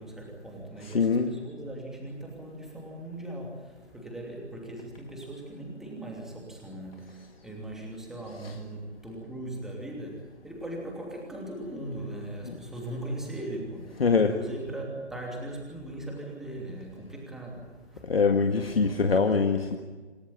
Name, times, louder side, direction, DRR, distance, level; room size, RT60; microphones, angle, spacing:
voice 1, 0.0-18.2 18.5-19.6, right 1 dB, ahead, -1 dB, 2.9 m, -39 dB
voice 2, 0.9-1.3 14.0-14.3 18.0-19.8, left 5 dB, 55° left, 4 dB, 1.9 m, -23 dB
28.0 x 16.5 x 9.1 m, 1.3 s
figure-of-eight pair, 155°, 35 cm